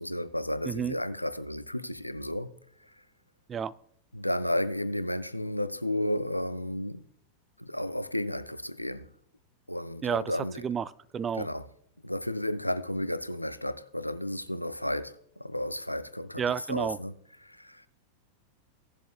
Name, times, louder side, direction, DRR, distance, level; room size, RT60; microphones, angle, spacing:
voice 1, 0.0-2.5 2.8-2.9 4.1-7.0 7.6-9.1 9.7-10.6 11.3-11.7 12.0-17.2 17.4-17.9, left 1 dB, 90° left, 0.5 m, -33 dB
voice 2, 11.1-11.5 16.4-17.0, right 7 dB, 20° right, 0.3 m, -30 dB
16.5 x 7.3 x 2.4 m
figure-of-eight pair, 90°, 0 cm